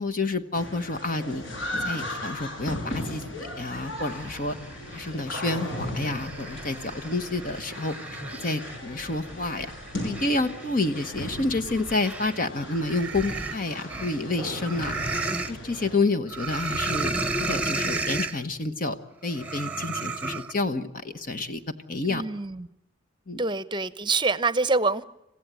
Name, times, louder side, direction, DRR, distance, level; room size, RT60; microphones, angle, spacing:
voice 1, 0.0-1.4 1.7-4.6 4.9-8.0 8.4-9.7 10.0-19.0 19.2-21.6 21.9-22.2 23.3-23.4, left 2 dB, 45° left, 1.2 m, -29 dB
sound 1, 0.5-15.9, left 1 dB, 65° left, 6.0 m, -37 dB
sound 2, 4.0-5.1 5.6-12.4 12.7-15.5 16.3-18.4 19.3-20.5, right 3 dB, 5° right, 1.1 m, -33 dB
voice 2, 22.0-22.7 23.4-25.0, right 3 dB, 25° right, 0.8 m, -26 dB
27.0 x 16.0 x 9.1 m
head